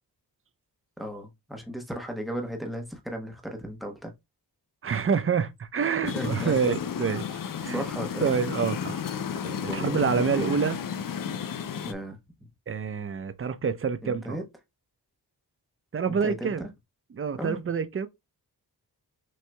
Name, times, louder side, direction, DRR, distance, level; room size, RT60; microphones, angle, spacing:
voice 1, 1.0-4.1 6.1-6.6 7.6-8.4 9.6-10.5 11.8-12.2 14.0-14.4 16.1-16.5 17.4-17.6, equal, ahead, 1.1 m, -35 dB
voice 2, 4.8-7.8 8.2-9.1 9.4-10.8 12.7-14.4 15.9-16.7 17.1-18.1, right 6 dB, 30° right, 0.5 m, -27 dB
sound 1, 6.1-11.9, left 7 dB, 55° left, 0.5 m, -32 dB
6.1 x 2.7 x 2.2 m
cardioid pair, 70°, 41 cm